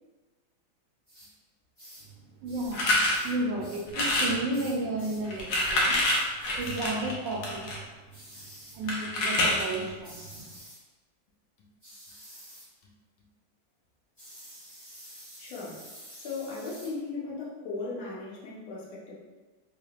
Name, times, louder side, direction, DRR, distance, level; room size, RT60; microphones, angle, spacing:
sound 1, 1.1-1.3 1.8-2.1 2.5-2.8 3.1-5.2 5.5-5.8 6.0-6.3 6.6-6.8 8.1-8.8 10.0-10.8 11.8-12.7 14.2-16.9, equal, 15° left, 0.9 m, -49 dB
voice 1, 2.4-6.0 6.6-7.9 8.7-10.4, right 2 dB, 75° right, 0 dB, 1.3 m, -33 dB
sound 2, 2.7-3.2 3.9-4.4 5.2-7.8 8.9-9.8, left 1 dB, 70° left, 1.4 m, -26 dB
voice 2, 15.4-19.1, left 3 dB, 85° left, -5 dB, 1.7 m, -37 dB
3.6 x 3.5 x 2.4 m, 1.3 s
omnidirectional pair, 2.2 m